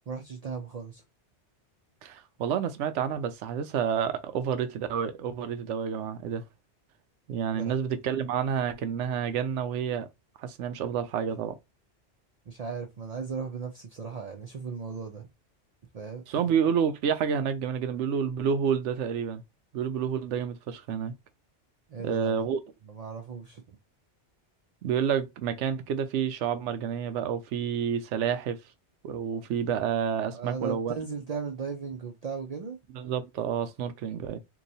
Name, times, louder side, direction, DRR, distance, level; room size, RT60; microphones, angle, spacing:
voice 1, 0.1-1.0 7.5-7.8 12.5-15.3 15.9-16.4 21.9-22.4 22.8-23.6 30.3-32.8, right 5 dB, 55° right, 0.4 m, -37 dB
voice 2, 2.0-6.4 7.3-10.1 10.4-11.6 16.3-19.4 19.7-21.1 22.0-22.6 24.8-28.6 29.0-30.9 32.9-34.4, right 7 dB, 90° right, 0.9 m, -29 dB
2.9 x 2.2 x 3.9 m
omnidirectional pair, 1.2 m